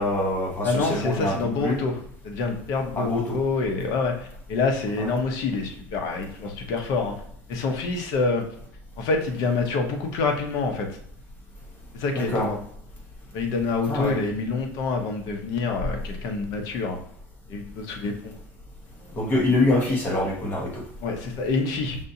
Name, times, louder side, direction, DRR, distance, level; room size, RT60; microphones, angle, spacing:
voice 1, 0.0-1.8 3.0-3.4 5.0-5.1 12.1-12.5 13.9-14.2 19.2-20.8, left 2 dB, 30° left, -1 dB, 1.1 m, -24 dB
voice 2, 0.6-7.1 7.5-8.4 9.0-10.9 11.9-12.6 13.3-17.0 17.5-18.4 21.0-22.0, left 4 dB, 60° left, 3 dB, 0.9 m, -27 dB
5.3 x 2.6 x 2.7 m, 0.67 s
supercardioid pair, 130°, 7 cm